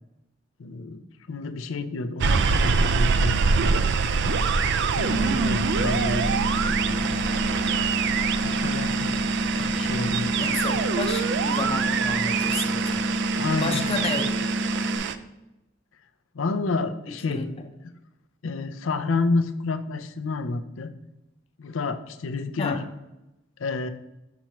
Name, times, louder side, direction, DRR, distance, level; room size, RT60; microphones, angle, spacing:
voice 1, 0.6-1.0 1.3-3.7 4.9-6.3 6.7-7.2 8.4-9.2 9.5-10.5 13.4-14.1 16.3-17.4 18.4-20.9 21.6-22.8 23.6-23.9, left 3 dB, 75° left, 11 dB, 0.5 m, -30 dB
sound 1, 2.2-15.1, right 5 dB, 60° right, 0.4 m, -25 dB
sound 2, 5.0-15.0, equal, 80° right, 1.6 m, -28 dB
voice 2, 5.1-5.8 10.4-13.1 13.6-14.5 17.3-17.5 22.6-22.8, left 3 dB, 30° left, 5 dB, 0.7 m, -32 dB
6.0 x 5.6 x 3.0 m, 0.95 s
head